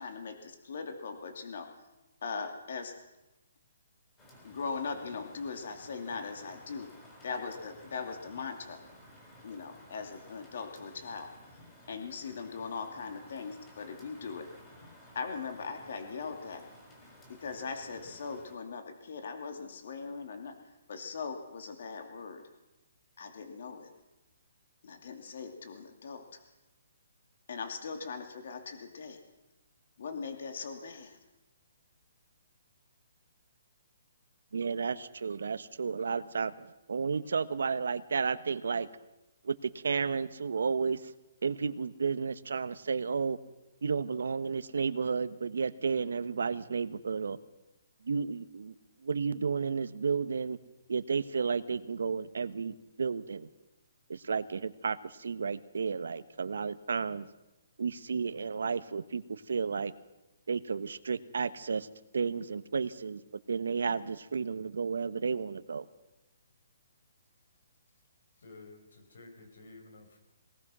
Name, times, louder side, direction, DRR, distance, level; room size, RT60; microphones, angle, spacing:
voice 1, 0.0-1.7 2.2-3.0 4.4-6.9 7.2-8.8 9.4-11.3 11.9-14.5 15.1-16.7 17.3-20.6 20.9-22.5 23.2-23.9 24.8-26.4 27.5-29.2 30.0-31.2, left 5 dB, 50° left, 6 dB, 2.5 m, -40 dB
Rain, 4.2-18.6, left 1 dB, 10° left, 3.9 m, -55 dB
voice 2, 34.5-38.9 39.4-41.1 41.4-43.4 43.8-47.4 48.0-48.7 49.0-50.6 50.9-53.5 54.1-57.3 57.8-59.9 60.5-61.9 62.1-63.2 63.5-65.8, right 5 dB, 80° right, 13 dB, 1.2 m, -32 dB
voice 3, 68.4-70.2, left 2 dB, 70° left, 5 dB, 5.9 m, -52 dB
22.0 x 19.0 x 6.2 m, 0.98 s
hypercardioid pair, 175°, 0 cm